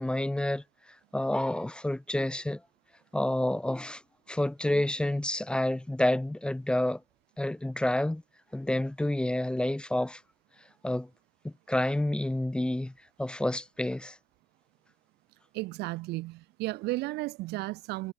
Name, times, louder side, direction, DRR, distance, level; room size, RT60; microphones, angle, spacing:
voice 1, 0.0-2.6 3.1-4.0 4.3-7.0 7.4-8.2 8.5-10.2 10.8-11.1 11.4-12.9 13.2-14.2, left 1 dB, 5° left, 0.4 m, -29 dB
voice 2, 15.5-18.1, right 20 dB, 80° right, 0.4 m, -34 dB
cardioid pair, 110°, 17 cm